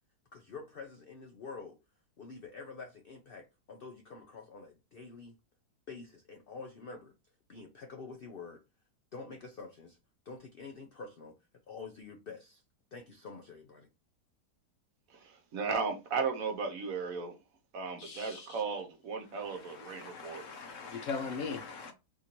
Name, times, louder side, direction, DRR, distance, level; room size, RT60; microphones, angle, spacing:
voice 1, 0.3-1.8 2.2-5.3 5.9-7.1 7.5-8.6 9.1-10.0 10.3-11.3 11.7-12.6 12.9-13.9, left 4 dB, 80° left, 0.5 m, -47 dB
voice 2, 15.1-17.4 17.7-20.4, right 5 dB, 65° right, 1.1 m, -35 dB
voice 3, 18.0-18.6 19.4-21.9, left 5 dB, 65° left, 0.9 m, -40 dB
3.6 x 2.6 x 2.9 m
omnidirectional pair, 1.8 m